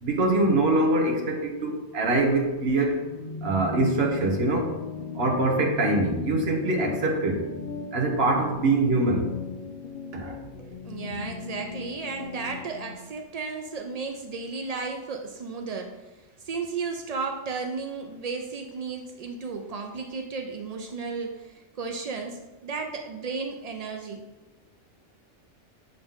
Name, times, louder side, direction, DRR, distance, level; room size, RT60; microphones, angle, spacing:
voice 1, 0.0-3.0 3.4-4.7 5.1-7.5 7.9-9.3 10.1-10.4, right 2 dB, 55° right, 2 dB, 1.1 m, -24 dB
sound 1, 3.0-12.9, left 5 dB, 60° left, 0.7 m, -37 dB
voice 2, 10.6-24.2, right 4 dB, 90° right, 3 dB, 0.3 m, -34 dB
6.8 x 3.9 x 3.6 m, 1.1 s
omnidirectional pair, 1.3 m